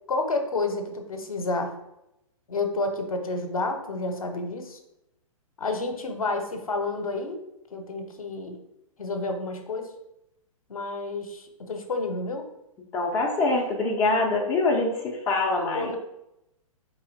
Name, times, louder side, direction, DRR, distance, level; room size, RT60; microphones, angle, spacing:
voice 1, 0.1-1.7 2.5-4.8 5.6-7.4 7.7-8.6 9.0-9.9 10.7-12.5 15.7-16.0, left 3 dB, 75° left, 6 dB, 0.7 m, -30 dB
voice 2, 12.9-15.9, left 2 dB, 15° left, 0 dB, 0.4 m, -24 dB
4.1 x 3.2 x 2.7 m, 0.85 s
figure-of-eight pair, 115°, 18 cm